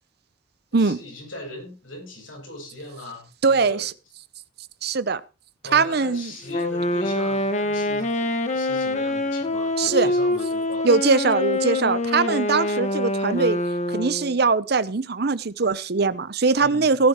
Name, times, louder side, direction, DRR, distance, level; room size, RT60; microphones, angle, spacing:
voice 1, 0.7-3.9 5.6-10.9 16.6-17.0, left 1 dB, 85° left, 1 dB, 7.6 m, -39 dB
voice 2, 3.4-3.9 4.8-5.2 5.7-6.3 9.8-10.1 10.8-13.6 13.9-17.1, right 4 dB, 55° right, 16 dB, 0.7 m, -21 dB
Wind instrument woodwind instrument, 6.5-14.3, left 2 dB, 35° left, 1.5 m, -25 dB
18.0 x 10.5 x 3.0 m, 0.30 s
head